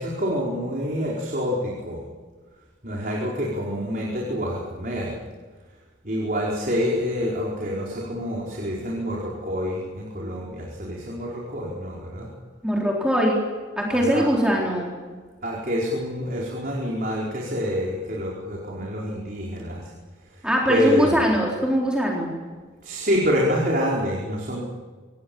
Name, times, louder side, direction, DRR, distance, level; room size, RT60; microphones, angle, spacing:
voice 1, 0.0-2.0 2.8-5.1 6.0-12.3 13.9-14.3 15.4-19.9 20.3-20.4 20.7-21.1 22.8-24.6, equal, 45° right, -3 dB, 5.0 m, -27 dB
voice 2, 12.6-13.4 13.8-14.9 20.4-22.3, equal, 5° right, -3 dB, 3.9 m, -21 dB
27.0 x 19.5 x 7.2 m, 1.4 s
head